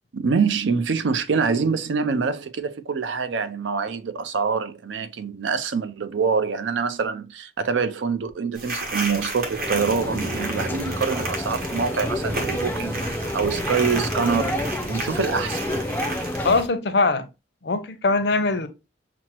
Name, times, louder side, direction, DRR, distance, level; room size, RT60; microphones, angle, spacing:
voice 1, 0.1-14.6 14.9-15.6, right 5 dB, 85° right, 0.5 m, -25 dB
sound 1, 8.5-16.7, right 2 dB, 55° right, 1.0 m, -33 dB
sound 2, 9.5-16.6, left 1 dB, 10° left, 0.4 m, -29 dB
voice 2, 16.4-17.3 17.6-18.7, left 3 dB, 65° left, 0.6 m, -21 dB
5.9 x 2.0 x 2.8 m
head